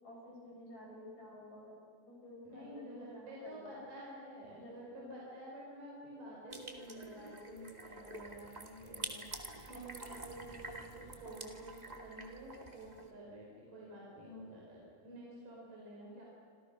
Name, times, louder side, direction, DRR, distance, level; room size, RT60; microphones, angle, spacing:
voice 1, 0.0-1.8 2.1-3.8 4.6-5.1, left 1 dB, 50° left, -1 dB, 7.7 m, -52 dB
voice 2, 2.4-16.2, right 1 dB, 60° right, -4 dB, 6.1 m, -50 dB
sound 1, 6.5-13.1, right 2 dB, 20° right, 1.2 m, -48 dB
27.5 x 27.0 x 6.1 m, 2.4 s
omnidirectional pair, 4.2 m